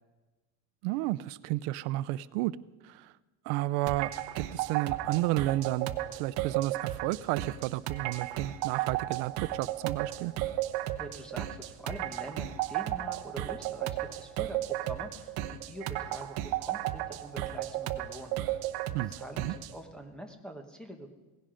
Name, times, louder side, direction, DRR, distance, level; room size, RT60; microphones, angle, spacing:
voice 1, 0.8-2.5 2.8-3.1 3.4-10.3 18.9-19.5, right 17 dB, 85° right, 18 dB, 0.6 m, -32 dB
sound 1, 3.9-19.7, right 14 dB, 55° right, 0.9 m, -34 dB
voice 2, 11.0-18.7 19.1-21.1, right 1 dB, ahead, 5 dB, 1.0 m, -45 dB
17.5 x 16.0 x 5.1 m, 1.2 s
cardioid pair, 180°, 45 cm